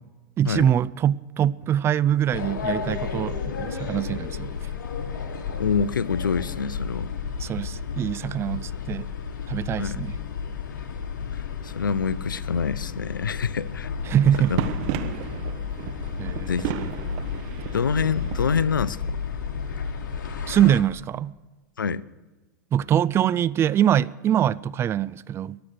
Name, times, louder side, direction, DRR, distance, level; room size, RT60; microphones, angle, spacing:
voice 1, 0.4-4.5 7.4-9.1 9.5-10.2 14.1-14.6 16.2-16.9 20.5-21.3 22.7-25.6, right 10 dB, 25° right, 0.4 m, -23 dB
sound 1, 2.3-20.8, left 6 dB, 70° left, 1.7 m, -32 dB
voice 2, 5.6-7.1 9.8-10.0 11.6-13.9 14.5-14.6 16.5-16.7 17.7-19.2 21.8-22.0, left 6 dB, 85° left, 0.5 m, -26 dB
sound 2, 14.0-19.0, right 9 dB, 50° right, 1.2 m, -33 dB
23.0 x 7.9 x 6.6 m
hypercardioid pair, 100°, 11 cm